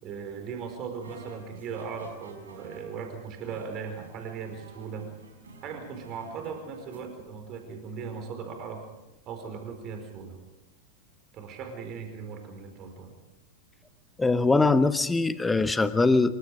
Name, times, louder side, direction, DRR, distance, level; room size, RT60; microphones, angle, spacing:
voice 1, 0.0-5.1 5.6-8.9 9.3-10.4 11.3-13.1, right 6 dB, 35° right, 5 dB, 4.8 m, -38 dB
sound 1, 0.9-7.0, right 3 dB, 70° right, 5.7 m, -50 dB
voice 2, 14.2-16.3, left 3 dB, 10° left, 12 dB, 1.2 m, -22 dB
26.5 x 24.0 x 5.0 m, 0.94 s
figure-of-eight pair, 90°, 0 cm